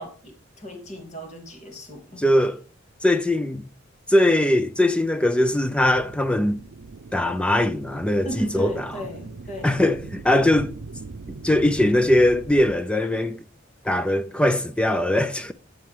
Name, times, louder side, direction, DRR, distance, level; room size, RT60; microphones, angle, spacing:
voice 1, 0.0-2.3 8.2-9.8, equal, 35° left, 2.5 m, -36 dB
voice 2, 2.2-2.6 3.0-3.7 4.1-6.6 7.1-8.9 9.6-10.7 11.4-13.4 13.8-15.5, left 1 dB, 5° left, 0.3 m, -21 dB
sound 1, 5.7-12.7, right 3 dB, 85° right, 0.6 m, -40 dB
11.0 x 7.8 x 3.2 m
head